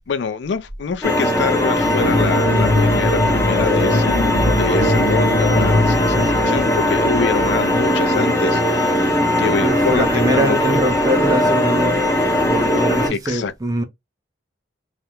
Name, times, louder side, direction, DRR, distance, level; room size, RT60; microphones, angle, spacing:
voice 1, 0.0-4.3 4.6-10.8 13.1-13.5, left 5 dB, 70° left, 0.4 m, -25 dB
sound 1, 1.0-13.1, equal, 15° left, 0.7 m, -19 dB
sound 2, 1.8-8.5, left 1 dB, 50° left, 0.8 m, -22 dB
voice 2, 9.6-12.0 12.5-13.8, right 1 dB, 20° right, 0.5 m, -23 dB
2.4 x 2.1 x 2.9 m
head